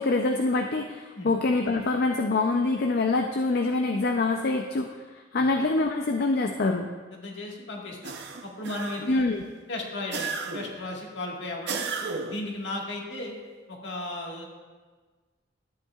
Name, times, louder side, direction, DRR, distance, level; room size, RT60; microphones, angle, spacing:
voice 1, 0.0-4.9 5.3-6.9 9.1-9.4, left 3 dB, 55° left, 3 dB, 0.5 m, -25 dB
voice 2, 7.1-8.2 8.4-9.3 9.7-11.8 12.2-13.4 13.7-14.5, left 2 dB, 70° left, -1 dB, 1.7 m, -35 dB
sound 1, 8.0-9.2 10.1-10.8 11.7-12.5, right 4 dB, 60° right, 0.7 m, -34 dB
13.0 x 9.0 x 2.4 m, 1.4 s
head